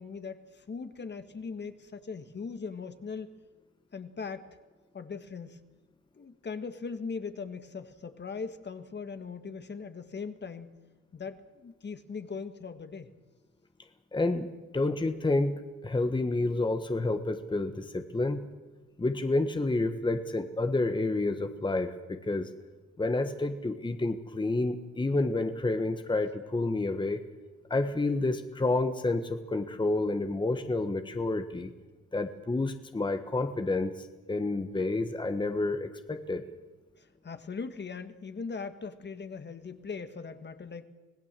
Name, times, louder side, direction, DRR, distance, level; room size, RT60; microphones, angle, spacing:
voice 1, 0.0-3.3 3.9-4.6 4.9-5.6 6.1-10.7 11.1-13.1 37.0-40.9, left 5 dB, 35° left, 9 dB, 1.6 m, -40 dB
voice 2, 14.1-18.4 19.0-22.5 23.0-27.2 27.7-31.7 32.1-36.4, left 2 dB, 15° left, 8 dB, 1.3 m, -29 dB
26.0 x 17.0 x 7.6 m, 1.2 s
cardioid pair, 90°, 30 cm